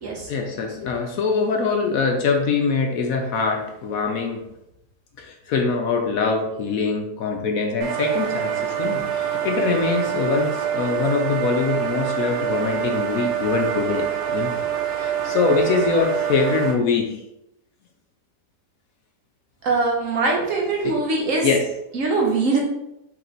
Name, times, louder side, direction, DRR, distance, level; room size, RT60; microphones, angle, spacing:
voice 1, 0.3-4.4 5.2-14.5 14.9-17.2 19.7-19.8 20.8-21.0 21.4-21.6, left 4 dB, 70° left, 3 dB, 1.0 m, -23 dB
sound 1, 7.8-16.7, right 9 dB, 85° right, 1.6 m, -25 dB
voice 2, 19.6-21.5 21.9-22.6, right 3 dB, 55° right, -1 dB, 1.2 m, -22 dB
4.5 x 3.0 x 3.9 m, 0.84 s
omnidirectional pair, 1.7 m